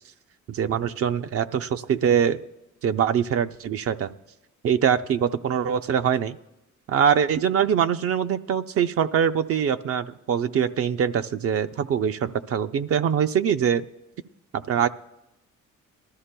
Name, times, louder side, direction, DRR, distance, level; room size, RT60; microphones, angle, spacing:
voice 1, 0.5-2.4 2.8-4.1 4.6-6.4 6.9-13.8 14.5-14.9, right 8 dB, 50° right, 10 dB, 0.5 m, -23 dB
19.5 x 13.0 x 2.2 m, 0.93 s
cardioid pair, 90°, 30 cm